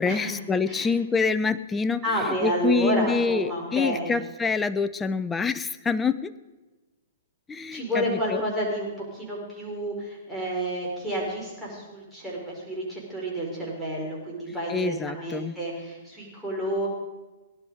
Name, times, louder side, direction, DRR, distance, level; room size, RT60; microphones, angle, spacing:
voice 1, 0.0-2.0 2.4-6.3 7.5-8.4 14.7-15.6, left 5 dB, 10° left, 12 dB, 0.6 m, -26 dB
voice 2, 2.0-4.1 7.7-16.9, right 1 dB, 5° right, -4 dB, 5.3 m, -30 dB
18.0 x 11.5 x 5.1 m, 1.1 s
hypercardioid pair, 135°, 0 cm